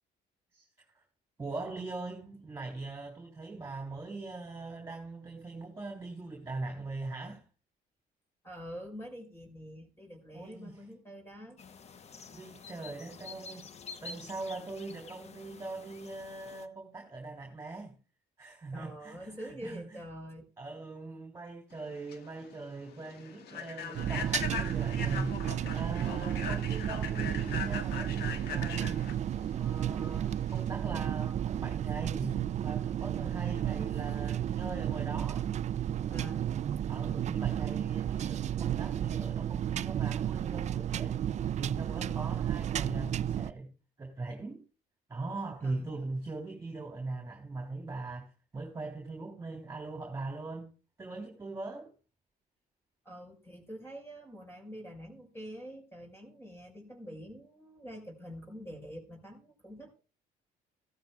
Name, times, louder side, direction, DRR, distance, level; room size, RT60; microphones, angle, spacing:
voice 1, 0.5-1.0 1.4-7.4 10.3-10.8 12.3-13.7 14.0-18.0 18.4-20.0 20.6-29.0 29.5-35.5 36.9-41.2 41.6-43.7 44.0-44.6 45.1-50.7 51.0-51.9, right 3 dB, 15° right, 3.7 m, -41 dB
voice 2, 8.4-11.6 18.7-20.5 33.2-34.4 36.1-36.4 42.0-42.4 45.6-46.0 53.1-60.0, equal, 15° left, 5.3 m, -46 dB
sound 1, 11.6-16.7, left 4 dB, 40° left, 1.1 m, -49 dB
Human voice / Train, 21.8-30.7, left 7 dB, 70° left, 1.7 m, -40 dB
sound 2, 23.9-43.5, right 10 dB, 45° right, 0.5 m, -32 dB
16.0 x 13.0 x 2.4 m
cardioid pair, 110°, 17 cm